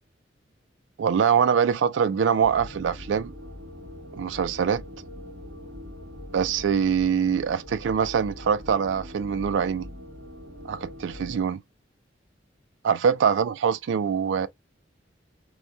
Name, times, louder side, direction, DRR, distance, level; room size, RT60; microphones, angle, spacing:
voice 1, 1.0-3.3 4.1-4.8 6.3-9.9 10.7-11.6 12.8-14.5, right 7 dB, 80° right, 0.3 m, -24 dB
sound 1, 2.4-11.4, left 1 dB, 60° right, 1.0 m, -42 dB
2.9 x 2.2 x 2.2 m
head